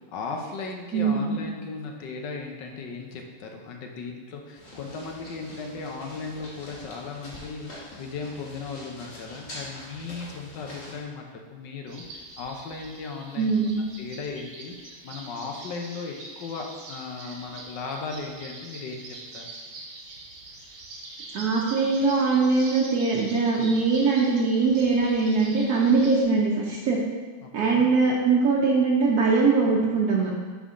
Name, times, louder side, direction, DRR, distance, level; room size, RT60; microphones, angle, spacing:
voice 1, 0.0-13.5 14.0-19.5 27.4-27.9, left 4 dB, 85° left, 2 dB, 1.5 m, -37 dB
voice 2, 0.9-1.4 13.4-13.8 21.3-27.0 27.5-30.3, right 4 dB, 65° right, -3 dB, 1.2 m, -22 dB
sound 1, 4.5-11.0, left 1 dB, 50° left, 1.9 m, -44 dB
sound 2, 11.9-26.2, right 2 dB, 85° right, 1.7 m, -43 dB
9.8 x 3.7 x 3.7 m, 1.4 s
omnidirectional pair, 1.9 m